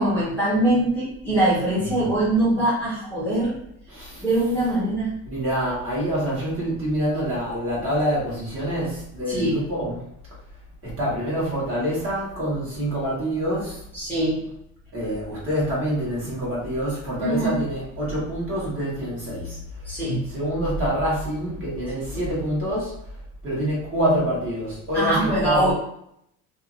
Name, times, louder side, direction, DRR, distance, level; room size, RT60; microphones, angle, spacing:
voice 1, 0.0-3.5 4.2-5.2 9.3-9.6 13.9-14.4 17.2-17.6 19.8-20.2 22.1-22.2 24.9-25.7, right 1 dB, 5° left, -9 dB, 0.9 m, -22 dB
voice 2, 1.7-2.1 3.9-4.2 5.3-10.1 10.8-13.8 14.9-19.6 20.2-23.0 23.4-25.7, equal, 35° right, -6 dB, 1.3 m, -26 dB
2.8 x 2.6 x 2.5 m, 0.75 s
cardioid pair, 145°, 38 cm